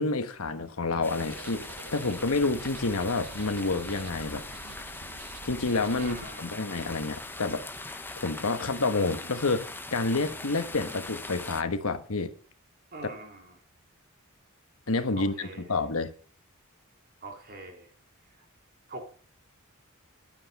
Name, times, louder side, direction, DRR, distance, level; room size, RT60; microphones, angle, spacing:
voice 1, 0.0-4.4 5.4-7.6 8.2-12.3 14.9-16.1, left 3 dB, 75° left, 1.3 m, -29 dB
sound 1, 1.0-11.6, left 2 dB, 10° left, 0.8 m, -41 dB
sound 2, 1.1-6.3, right 4 dB, 70° right, 1.0 m, -47 dB
voice 2, 6.0-6.5 12.9-13.6 15.2-15.8 17.2-17.9 18.9-19.1, right 2 dB, 45° right, 2.8 m, -43 dB
10.5 x 8.8 x 5.4 m
head